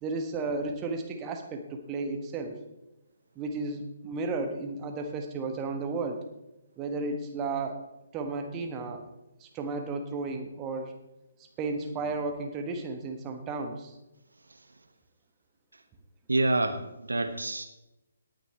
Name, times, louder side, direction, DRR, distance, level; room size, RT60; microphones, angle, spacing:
voice 1, 0.0-2.6 3.3-6.2 6.8-7.8 8.1-9.0 9.4-10.9 11.6-13.9, right 3 dB, 20° right, 4 dB, 1.4 m, -33 dB
voice 2, 16.3-17.7, right 2 dB, 70° right, 8 dB, 1.1 m, -27 dB
18.0 x 9.3 x 3.5 m, 0.94 s
figure-of-eight pair, 135°, 0 cm